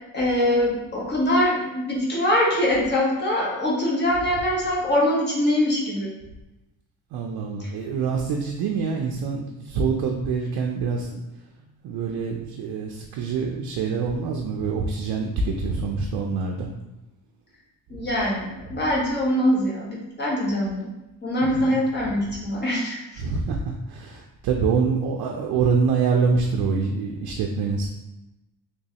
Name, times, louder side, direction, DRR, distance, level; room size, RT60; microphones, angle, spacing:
voice 1, 0.1-6.1 17.9-20.9 21.2-23.0, left 1 dB, 25° left, -4 dB, 1.1 m, -23 dB
voice 2, 7.1-11.1 11.8-16.7 21.4-21.8 23.2-23.6 23.9-27.9, right 5 dB, 70° right, 1 dB, 0.5 m, -25 dB
3.3 x 3.1 x 2.8 m, 0.97 s
cardioid pair, 125°, 39 cm